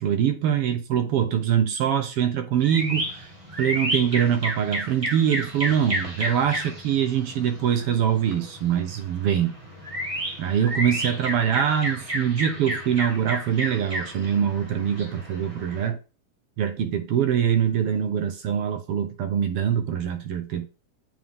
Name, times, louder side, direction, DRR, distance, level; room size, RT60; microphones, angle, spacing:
voice 1, 0.0-3.3 3.6-9.5 10.4-16.0 16.6-20.7, right 9 dB, 70° right, 1.4 m, -24 dB
sound 1, 2.6-15.9, equal, 15° right, 1.2 m, -32 dB
7.5 x 5.5 x 3.6 m
omnidirectional pair, 3.4 m